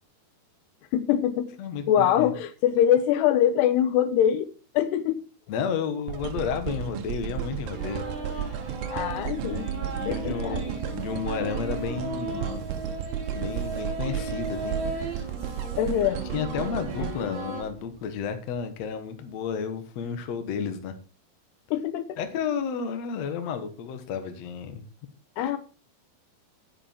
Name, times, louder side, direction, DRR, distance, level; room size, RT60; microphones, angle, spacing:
voice 1, 0.9-1.5 1.9-4.5 4.7-5.2 8.9-9.7 10.1-10.6 15.8-16.2 17.0-17.4 21.7-22.2 25.4-25.6, left 10 dB, 90° left, 3.0 m, -23 dB
voice 2, 1.6-2.3 5.5-8.0 8.3-8.7 9.3-12.7 13.3-15.2 16.3-20.9 22.2-24.8 25.4-25.6, left 7 dB, 55° left, 2.0 m, -32 dB
sound 1, 6.1-18.3 18.8-18.9, right 10 dB, 70° right, 2.3 m, -34 dB
sound 2, 7.7-17.6, right 2 dB, 30° right, 3.3 m, -36 dB
9.9 x 8.7 x 4.5 m
omnidirectional pair, 4.6 m